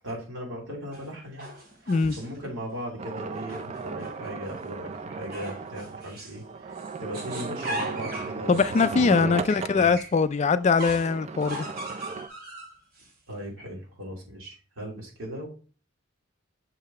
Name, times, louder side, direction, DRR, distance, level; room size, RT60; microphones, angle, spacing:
voice 1, 0.0-1.5 2.2-8.6 8.9-9.9 13.3-15.5, equal, 85° right, 2.8 m, -38 dB
sound 1, 0.9-2.4 3.3-4.7 5.3-6.4 6.7-10.2 10.8-13.1, right 1 dB, 50° right, 2.7 m, -39 dB
sound 2, 3.0-9.8 10.7-12.3, right 4 dB, 35° right, 0.4 m, -36 dB
voice 2, 8.5-11.7, left 4 dB, 35° left, 0.3 m, -22 dB
6.3 x 4.0 x 4.2 m
head